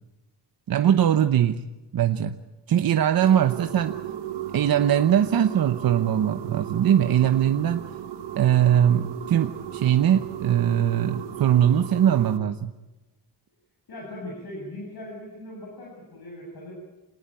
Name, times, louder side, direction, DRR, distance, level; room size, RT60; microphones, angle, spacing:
voice 1, 0.7-1.6 1.9-2.4 2.7-4.0 4.5-7.8 8.4-12.7, right 10 dB, 60° right, 7 dB, 1.0 m, -21 dB
sound 1, 3.2-12.4, right 10 dB, 90° right, 1.4 m, -35 dB
voice 2, 13.9-16.7, left 1 dB, 65° left, -2 dB, 7.8 m, -39 dB
27.5 x 19.0 x 9.1 m, 1.1 s
wide cardioid pair, 160°, 41 cm